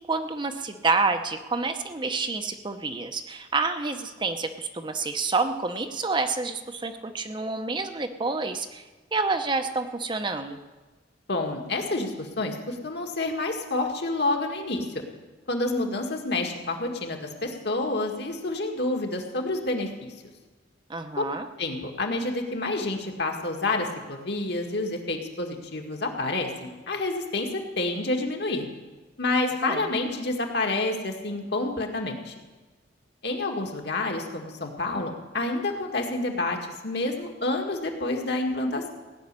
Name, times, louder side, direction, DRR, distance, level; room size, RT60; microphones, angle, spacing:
voice 1, 0.0-8.8 9.1-10.6 20.9-21.5 29.6-29.9, right 3 dB, 25° right, 7 dB, 0.7 m, -28 dB
voice 2, 11.3-14.9 15.5-20.1 21.1-21.2 21.6-28.7 29.2-32.3 33.2-36.6 36.8-38.9, left 2 dB, 60° left, 2 dB, 1.9 m, -28 dB
16.5 x 6.4 x 9.7 m, 1.2 s
head